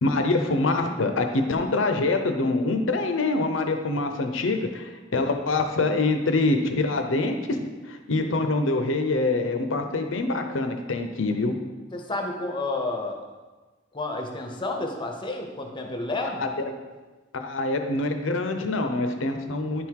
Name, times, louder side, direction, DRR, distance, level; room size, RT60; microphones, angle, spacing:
voice 1, 0.0-7.6 7.9-11.5 16.2-16.5 17.3-19.9, left 2 dB, 75° left, 5 dB, 0.8 m, -25 dB
voice 2, 11.9-13.2 13.9-16.4, left 2 dB, 25° left, 2 dB, 0.9 m, -30 dB
9.9 x 3.7 x 4.7 m, 1.3 s
head